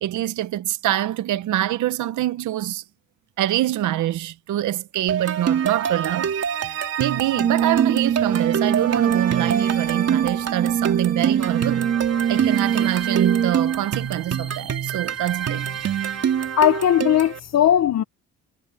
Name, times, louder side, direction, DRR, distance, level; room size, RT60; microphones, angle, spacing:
voice 1, 0.0-2.8 3.4-11.9 12.3-15.7, right 13 dB, 75° right, 1.0 m, -25 dB
sound 1, 5.1-17.4, right 8 dB, 55° right, 3.6 m, -26 dB
Brass instrument, 7.4-13.8, right 8 dB, 30° right, 0.6 m, -23 dB
voice 2, 16.6-18.0, left 10 dB, 60° left, 1.0 m, -18 dB
cardioid pair, 90°, 30 cm